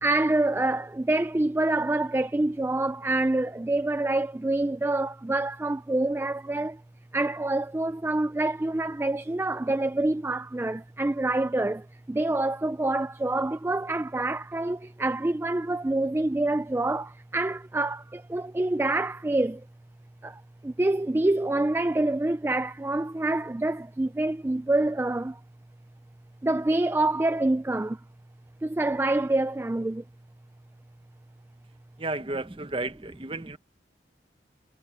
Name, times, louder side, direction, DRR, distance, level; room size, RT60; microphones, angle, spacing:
voice 1, 0.0-6.8 7.1-19.6 20.2-25.4 26.4-28.0 28.6-30.0, right 2 dB, 10° right, 0.3 m, -26 dB
voice 2, 32.0-33.6, right 2 dB, 30° right, 0.9 m, -33 dB
head